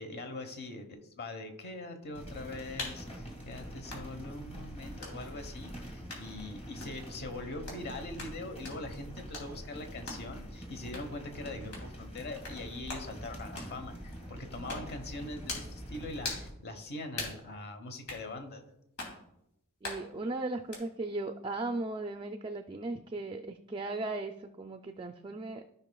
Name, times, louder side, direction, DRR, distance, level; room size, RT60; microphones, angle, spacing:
voice 1, 0.0-18.6, left 2 dB, 50° left, 7 dB, 1.0 m, -42 dB
sound 1, 2.1-16.5, equal, 30° left, 1.8 m, -45 dB
sound 2, 2.8-3.0 3.9-4.1 5.0-5.2 6.1-6.3 6.8-7.0 7.7-7.8 8.2-8.4 8.6-8.8 9.3-9.5 10.1-10.3 10.9-11.1 11.7-11.9 12.4-12.6 12.9-13.1 13.6-13.8 14.7-14.9 15.5-15.7 16.2-16.5 17.1-17.4 18.1-18.2 19.0-19.2 19.8-20.1 20.7-20.8, left 2 dB, 90° left, 3.1 m, -40 dB
voice 2, 19.8-25.7, right 2 dB, 25° right, 6 dB, 0.3 m, -37 dB
14.5 x 5.5 x 2.3 m, 0.82 s
head